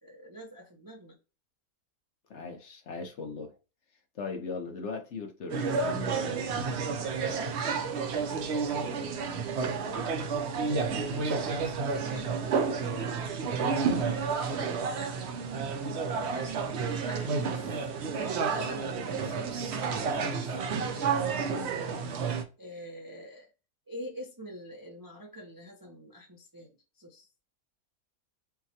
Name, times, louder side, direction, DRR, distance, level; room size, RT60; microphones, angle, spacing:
voice 1, 0.0-1.2 10.6-13.1 13.4-14.4 15.8-16.6 17.1-17.8 18.1-19.9 20.1-20.7 22.6-23.5 23.9-27.3, equal, 30° right, 0.3 m, -46 dB
voice 2, 2.3-3.6 4.1-6.4 21.5-21.7, left 4 dB, 55° left, 1.1 m, -39 dB
sound 1, 5.5-22.4, right 5 dB, 60° right, 0.8 m, -30 dB
5.6 x 2.2 x 2.8 m
omnidirectional pair, 1.5 m